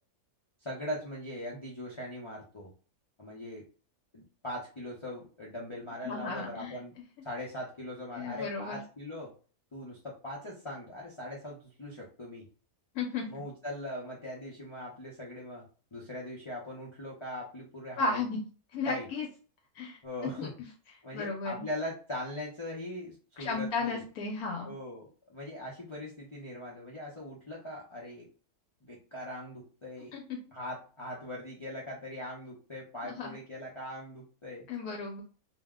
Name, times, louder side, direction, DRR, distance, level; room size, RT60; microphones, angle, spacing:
voice 1, 0.6-2.7 3.2-3.6 4.1-6.9 7.2-9.3 9.7-12.5 13.2-15.6 15.9-18.2 18.8-19.1 20.0-20.5 21.0-24.0 24.6-28.3 28.8-30.2 30.5-34.7, left 1 dB, 50° left, -5 dB, 0.3 m, -41 dB
voice 2, 6.0-6.8 8.1-8.8 12.9-13.3 18.0-18.4 18.7-19.3 19.7-20.0 20.4-20.5 21.1-21.6 23.4-24.7 30.1-30.4 33.0-33.4 34.7-35.2, left 4 dB, 75° left, 1 dB, 1.1 m, -34 dB
2.7 x 2.0 x 3.5 m, 0.38 s
omnidirectional pair, 1.7 m